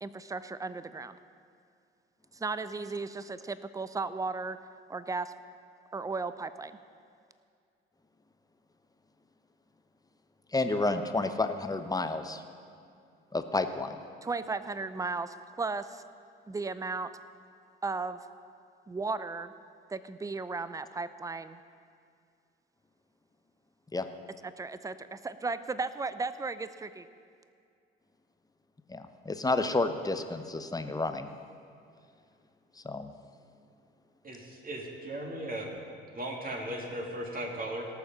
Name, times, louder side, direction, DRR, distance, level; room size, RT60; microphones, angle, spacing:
voice 1, 0.0-1.2 2.3-4.6 4.9-5.3 5.9-6.8 14.2-16.0 16.5-17.1 17.8-18.2 18.9-19.5 19.9-21.6 24.4-27.1, right 4 dB, 10° right, 13 dB, 0.5 m, -35 dB
voice 2, 10.5-12.4 13.3-14.0 23.9-24.1 28.9-31.3 32.8-33.1, left 2 dB, 10° left, 8 dB, 1.0 m, -30 dB
voice 3, 34.2-35.7 36.1-37.9, right 1 dB, 30° right, 0 dB, 2.8 m, -37 dB
18.0 x 7.0 x 5.6 m, 2.3 s
hypercardioid pair, 55°, 30 cm